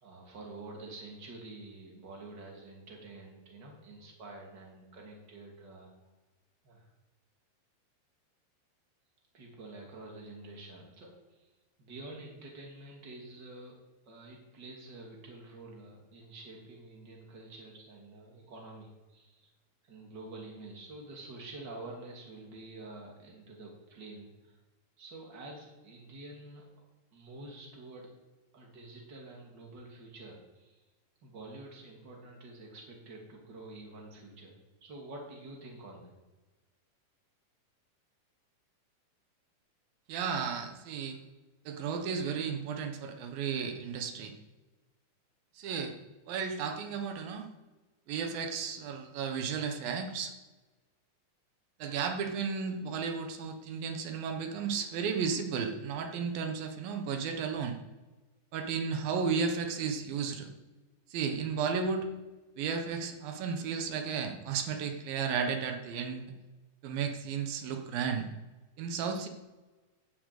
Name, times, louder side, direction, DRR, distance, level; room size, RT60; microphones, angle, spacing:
voice 1, 0.0-5.9 6.6-6.9 9.3-11.5 11.8-13.8 14.0-19.5 19.8-24.5 25.0-26.8 27.1-28.2 28.5-30.8 31.2-34.5 34.8-36.1, right 2 dB, 30° right, -1 dB, 2.9 m, -48 dB
voice 2, 40.1-41.2 41.7-44.3 45.6-45.9 46.3-47.5 48.1-50.3 51.8-57.8 58.5-60.5 61.1-62.1 62.6-66.3 66.8-68.3 68.8-69.3, right 6 dB, 85° right, 5 dB, 3.0 m, -33 dB
11.5 x 7.7 x 8.3 m, 1.2 s
omnidirectional pair, 4.0 m